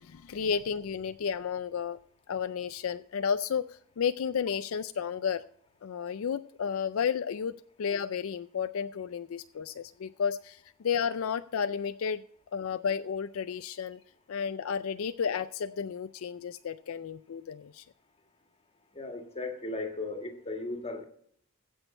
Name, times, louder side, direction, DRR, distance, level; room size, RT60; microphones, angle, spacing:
voice 1, 0.0-2.0 2.3-5.4 5.8-7.5 7.8-12.2 12.5-14.0 14.3-17.8, left 7 dB, 70° left, 12 dB, 0.4 m, -32 dB
voice 2, 19.0-21.0, left 2 dB, 30° left, 4 dB, 1.8 m, -36 dB
16.0 x 6.3 x 4.3 m, 0.65 s
head